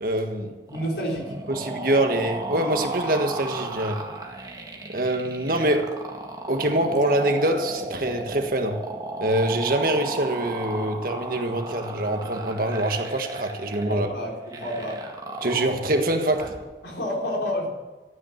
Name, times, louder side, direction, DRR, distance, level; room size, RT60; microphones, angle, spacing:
voice 1, 0.0-0.6 1.5-4.0 4.9-5.9 6.5-8.8 9.2-14.1 15.4-16.5, right 1 dB, 55° right, 4 dB, 1.5 m, -24 dB
voice 2, 0.7-1.3 13.9-15.0 16.8-17.7, equal, 75° left, -1 dB, 4.0 m, -29 dB
sound 1, 0.7-16.6, right 2 dB, 20° right, 1.8 m, -35 dB
13.0 x 9.3 x 7.4 m, 1.2 s
head